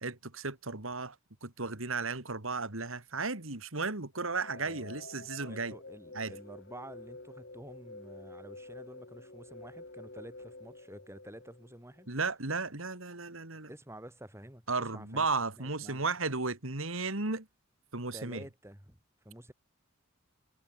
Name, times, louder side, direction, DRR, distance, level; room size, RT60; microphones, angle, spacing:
voice 1, 0.0-1.2 1.4-5.7 6.1-6.3 12.1-13.7 14.7-17.5 17.9-18.4, right 3 dB, 75° right, 2.9 m, -34 dB
sound 1, 4.1-12.1, left 2 dB, 55° left, 3.4 m, -49 dB
voice 2, 4.5-12.1 13.7-15.3 15.6-16.0 18.1-19.0 19.2-19.5, right 1 dB, 15° right, 5.0 m, -50 dB
head